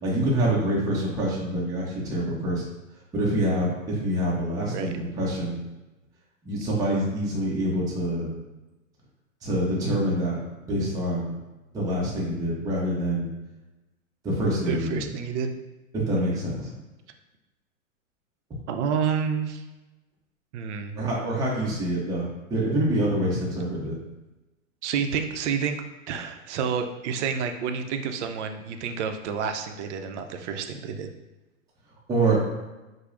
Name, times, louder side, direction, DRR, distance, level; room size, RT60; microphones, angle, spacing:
voice 1, 0.0-2.6 3.1-5.6 6.4-8.3 9.4-10.4 10.7-11.3 11.7-13.3 14.2-15.0 15.9-16.7 20.9-23.9 32.1-32.4, right 1 dB, 10° right, -5 dB, 0.5 m, -26 dB
voice 2, 14.7-15.5 16.2-16.4 18.7-19.6 20.5-21.0 24.8-31.1, right 6 dB, 60° right, 6 dB, 0.5 m, -29 dB
4.5 x 2.0 x 2.4 m, 1.1 s
hypercardioid pair, 120°, 40 cm